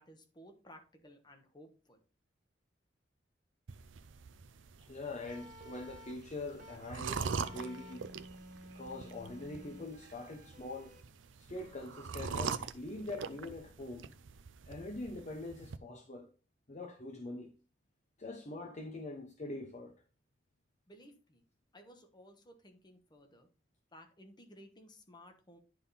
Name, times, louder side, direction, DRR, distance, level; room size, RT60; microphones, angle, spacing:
voice 1, 0.0-2.0 20.9-21.4 21.7-23.5 23.9-25.6, equal, 25° left, 1.2 m, -57 dB
sound 1, 3.7-15.8, right 5 dB, 85° right, 0.5 m, -43 dB
voice 2, 4.9-8.1 8.7-11.0 11.5-14.1 14.7-16.3 16.7-17.5 18.2-19.9, left 2 dB, 40° left, 0.9 m, -43 dB
sound 2, 5.3-11.0, equal, 45° right, 1.3 m, -53 dB
10.5 x 3.7 x 4.1 m
head